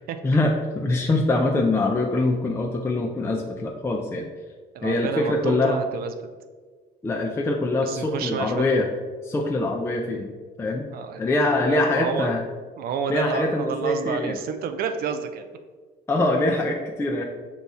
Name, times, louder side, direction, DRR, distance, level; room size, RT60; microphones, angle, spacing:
voice 1, 0.2-4.3 4.8-5.8 7.0-8.9 9.2-10.3 10.6-10.9 11.2-12.4 13.1-14.4 16.1-17.2, left 2 dB, 15° left, 1 dB, 0.4 m, -23 dB
voice 2, 4.7-6.1 7.8-8.6 10.9-12.3 12.8-15.5 17.1-17.2, right 6 dB, 65° right, 8 dB, 0.4 m, -30 dB
5.4 x 2.3 x 4.1 m, 1.5 s
cardioid pair, 110°, 17 cm